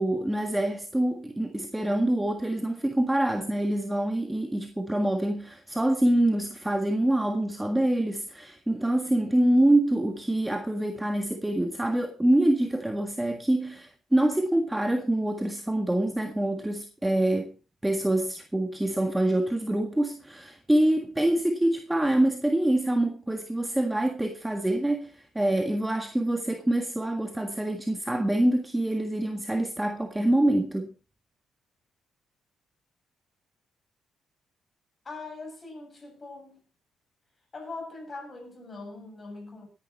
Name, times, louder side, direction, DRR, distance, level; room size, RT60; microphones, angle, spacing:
voice 1, 0.0-17.5 17.8-30.9, right 1 dB, 10° right, 1.6 m, -25 dB
voice 2, 35.0-36.7 37.5-39.7, left 3 dB, 30° left, 7.3 m, -41 dB
17.5 x 11.0 x 4.2 m
cardioid pair, 90°, 0 cm